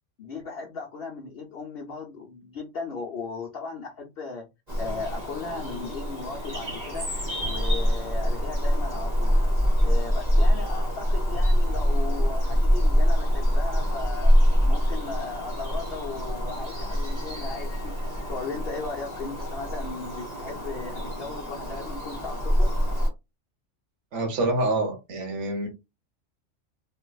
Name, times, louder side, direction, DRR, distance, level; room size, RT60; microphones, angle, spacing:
voice 1, 0.2-4.5 4.8-7.1 7.4-9.4 9.8-14.3 14.6-22.7, left 4 dB, 55° left, 0.8 m, -37 dB
Bird vocalization bird call bird song, 4.7-23.1, equal, 35° right, 1.6 m, -25 dB
voice 2, 24.1-25.7, right 2 dB, 70° right, 1.3 m, -26 dB
3.3 x 2.9 x 2.2 m
omnidirectional pair, 1.3 m